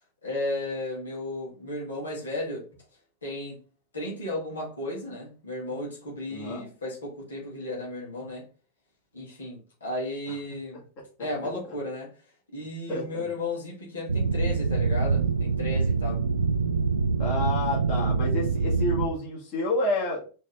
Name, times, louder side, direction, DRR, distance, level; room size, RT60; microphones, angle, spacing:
voice 1, 0.2-2.7 3.2-3.6 3.9-8.5 9.1-10.8 11.2-12.1 12.5-16.2, left 2 dB, 70° left, 1.8 m, -34 dB
voice 2, 6.3-6.7 12.9-13.3 17.2-20.2, left 2 dB, 40° left, 1.9 m, -29 dB
sound 1, 14.1-19.1, right 4 dB, 75° right, 0.4 m, -25 dB
4.4 x 3.1 x 3.7 m
figure-of-eight pair, 90°, 0 cm